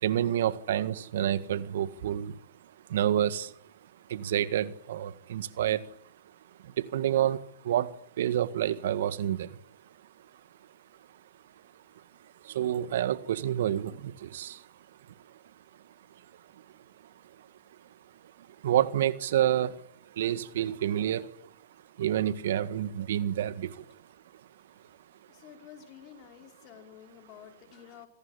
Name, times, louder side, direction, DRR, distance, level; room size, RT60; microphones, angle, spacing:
voice 1, 0.0-2.4 2.9-3.5 4.1-5.9 6.6-9.6 12.4-14.7 18.6-19.8 20.1-21.3 22.0-23.9, right 11 dB, 65° right, 14 dB, 1.7 m, -28 dB
voice 2, 25.3-28.1, left 10 dB, 35° left, 5 dB, 5.6 m, -51 dB
26.5 x 18.5 x 10.0 m, 0.67 s
hypercardioid pair, 140°, 0 cm